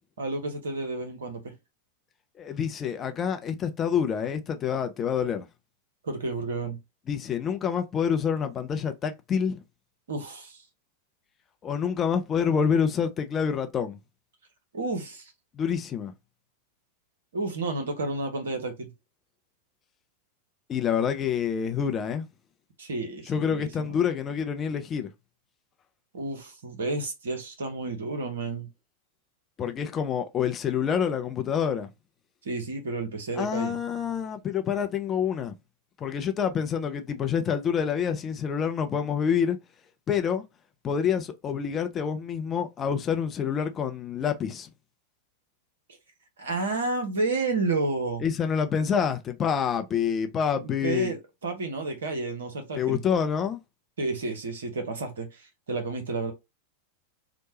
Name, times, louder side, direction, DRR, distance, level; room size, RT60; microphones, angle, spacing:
voice 1, 0.2-1.5 6.0-6.8 10.1-10.6 14.7-15.3 17.3-18.9 22.8-24.0 26.1-28.7 32.4-33.8 46.4-48.2 50.6-53.0 54.0-56.3, right 3 dB, 65° right, 0.8 m, -31 dB
voice 2, 2.4-5.5 7.1-9.6 11.6-14.0 15.5-16.1 20.7-22.3 23.3-25.1 29.6-31.9 33.4-35.5 36.0-39.6 40.1-40.4 40.8-44.7 48.2-51.1 52.8-53.6, left 7 dB, 25° left, 0.4 m, -27 dB
3.0 x 2.1 x 2.7 m
figure-of-eight pair, 90°, 0 cm